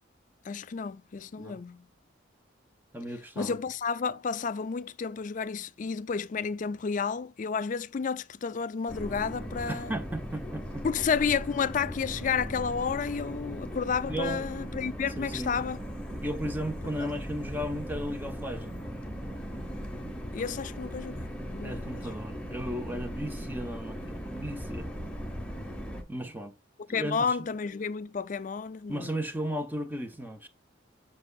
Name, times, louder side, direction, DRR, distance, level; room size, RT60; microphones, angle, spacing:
voice 1, 0.5-1.8 3.4-9.9 10.8-15.8 17.0-17.1 20.3-22.0 26.9-29.1, left 6 dB, 40° left, 0.3 m, -31 dB
voice 2, 2.9-3.6 9.7-10.8 14.1-14.5 15.2-15.5 16.2-18.8 21.6-25.1 26.1-26.5 26.9-27.3 28.9-30.5, equal, 10° right, 0.9 m, -35 dB
sound 1, 8.9-26.0, equal, 5° left, 1.0 m, -38 dB
7.6 x 5.5 x 2.4 m
head